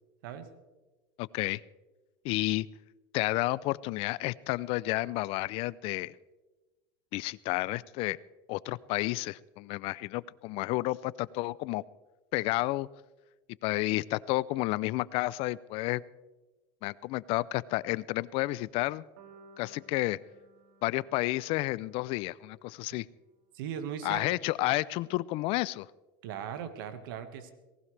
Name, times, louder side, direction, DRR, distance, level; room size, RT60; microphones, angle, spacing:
voice 1, 1.2-1.6 2.2-2.7 3.1-6.1 7.1-8.2 8.5-11.8 12.3-12.9 13.6-16.0 16.8-19.0 19.6-20.2 20.8-23.1 24.0-25.9, left 19 dB, 55° left, 21 dB, 0.4 m, -31 dB
sound 1, 19.2-23.3, right 2 dB, 65° right, 2.4 m, -59 dB
voice 2, 23.5-24.2 26.2-27.5, right 8 dB, 85° right, 9 dB, 1.6 m, -38 dB
18.5 x 17.5 x 3.3 m, 1.2 s
supercardioid pair, 130°, 11 cm